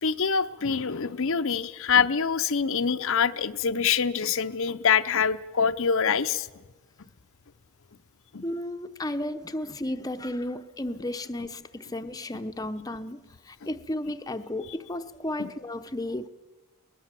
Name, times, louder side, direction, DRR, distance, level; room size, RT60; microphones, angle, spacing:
voice 1, 0.0-6.5 8.3-8.4 15.4-15.5, left 6 dB, 60° left, 11 dB, 0.7 m, -25 dB
voice 2, 8.4-16.3, left 1 dB, 15° left, 9 dB, 0.8 m, -33 dB
22.0 x 20.0 x 7.5 m, 1.2 s
head